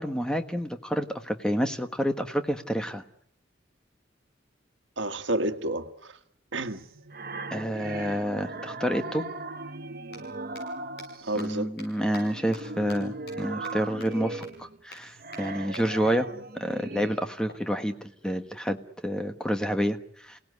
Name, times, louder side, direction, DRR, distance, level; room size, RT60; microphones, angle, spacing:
voice 1, 0.0-3.0 7.5-9.2 11.4-16.3 16.6-18.8 19.0-20.4, equal, 5° left, 7 dB, 1.4 m, -29 dB
voice 2, 5.0-6.2 6.5-6.8 11.2-11.7, right 1 dB, 85° right, 7 dB, 1.5 m, -30 dB
sound 1, 6.6-11.4 11.9-17.2, right 2 dB, 50° right, 1.1 m, -38 dB
sound 2, 10.0-10.2 10.5-10.6 11.0-11.1 11.4-11.5 11.8-11.9 12.1-12.2 12.5-12.6 12.9-13.0 13.3-13.4 13.6-13.7 14.0-14.1 14.4-14.5 14.9-15.0 15.3-15.4 15.7-15.8 17.5-18.5, left 2 dB, 60° left, 7.9 m, -45 dB
29.0 x 18.0 x 9.6 m, 0.74 s
head